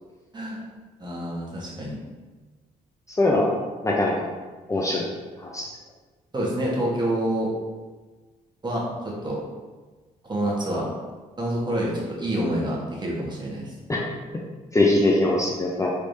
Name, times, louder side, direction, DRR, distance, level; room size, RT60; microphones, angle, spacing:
voice 1, 1.0-2.0 6.3-7.5 8.6-8.8 9.2-9.4 10.3-10.9 11.4-13.7, right 1 dB, 25° right, -4 dB, 1.2 m, -27 dB
voice 2, 3.1-3.5 3.8-4.1 4.7-5.1 5.4-5.7 13.9-14.1 14.7-15.9, left 2 dB, 20° left, -2 dB, 0.5 m, -21 dB
3.3 x 3.0 x 2.7 m, 1.3 s
supercardioid pair, 55°, 17 cm